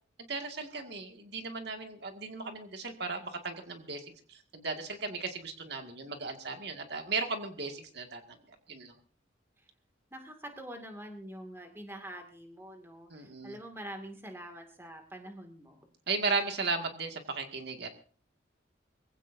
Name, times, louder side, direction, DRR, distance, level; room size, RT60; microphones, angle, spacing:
voice 1, 0.2-8.2 8.7-8.9 13.1-13.6 16.1-17.9, right 4 dB, 60° right, 4 dB, 2.1 m, -36 dB
voice 2, 10.1-15.8, right 1 dB, 15° right, 3 dB, 2.2 m, -45 dB
24.0 x 16.0 x 2.7 m, 0.44 s
head